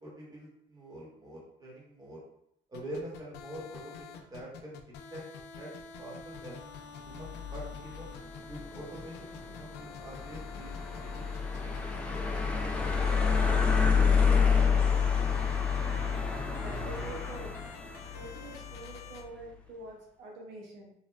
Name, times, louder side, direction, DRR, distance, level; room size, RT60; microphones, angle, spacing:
voice 1, 0.0-2.2 2.7-4.8 5.1-5.2 5.5-5.7 6.0-6.6 7.0-8.1 8.5-10.7 11.0-11.2 11.5-11.8, right 1 dB, 20° right, -5 dB, 1.2 m, -45 dB
sound 1, 2.7-19.2, left 6 dB, 90° left, 0.4 m, -48 dB
sound 2, 7.1-19.2, left 6 dB, 5° left, 0.4 m, -29 dB
voice 2, 16.5-17.5 18.1-20.9, right 2 dB, 80° right, -2 dB, 0.8 m, -46 dB
3.2 x 2.3 x 2.3 m, 0.74 s
cardioid pair, 110°, 17 cm